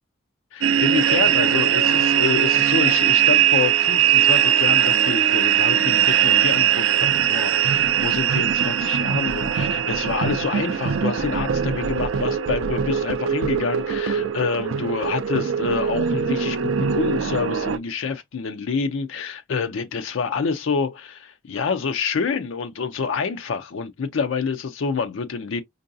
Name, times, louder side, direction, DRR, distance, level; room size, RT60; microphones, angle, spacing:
voice 1, 0.5-25.6, left 5 dB, 70° left, 0.4 m, -27 dB
sound 1, 0.6-17.8, right 9 dB, 75° right, 0.4 m, -20 dB
4.5 x 2.6 x 2.5 m
head